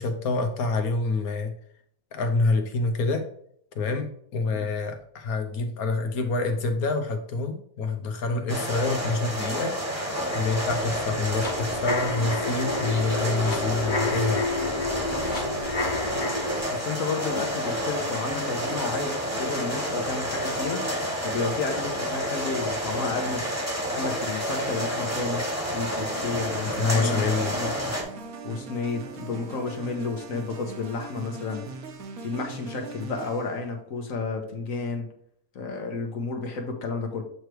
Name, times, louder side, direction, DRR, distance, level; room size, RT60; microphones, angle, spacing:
voice 1, 0.0-1.5 2.1-3.3 3.7-4.1 4.3-9.8 10.3-14.5 26.7-27.5, left 3 dB, 85° left, 6 dB, 1.4 m, -27 dB
sound 1, 8.5-28.0, equal, 10° right, 1.2 m, -30 dB
sound 2, 10.2-16.6, left 3 dB, 35° left, 1.3 m, -31 dB
voice 2, 16.7-20.8 21.2-23.4 23.9-25.4 25.7-27.2 27.5-27.7 28.4-31.6 32.2-35.1 35.5-37.2, left 4 dB, 70° left, 4 dB, 1.4 m, -31 dB
sound 3, 26.0-33.6, right 4 dB, 80° right, 1.3 m, -40 dB
8.0 x 3.2 x 4.7 m, 0.65 s
omnidirectional pair, 1.5 m